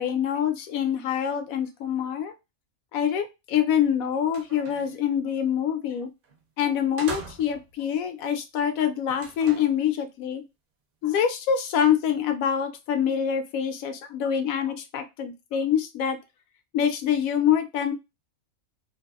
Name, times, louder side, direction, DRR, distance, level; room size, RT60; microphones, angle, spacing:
voice 1, 0.0-2.3 2.9-6.1 6.6-10.4 11.0-16.2 16.7-17.9, left 8 dB, 85° left, 8 dB, 1.0 m, -25 dB
sound 1, 3.7-3.8 4.2-5.0 6.2-6.4 7.0-7.8 9.1-9.8, right 4 dB, 50° right, 0.7 m, -41 dB
2.6 x 2.3 x 2.3 m, 0.24 s
omnidirectional pair, 1.4 m